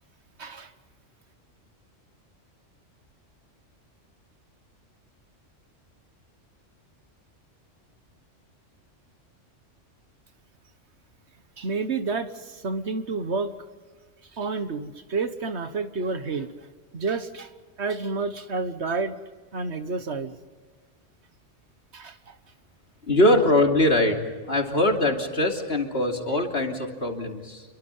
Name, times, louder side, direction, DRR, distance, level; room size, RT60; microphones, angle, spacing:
voice 1, 0.4-0.7 11.6-13.5 14.3-16.5 16.9-17.5 17.8-19.2 19.5-20.3 21.9-22.3, right 4 dB, 65° right, 10 dB, 1.6 m, -29 dB
voice 2, 23.1-24.2 24.5-27.6, left 1 dB, 55° left, 2 dB, 3.2 m, -22 dB
28.0 x 23.5 x 5.6 m, 1.4 s
omnidirectional pair, 1.2 m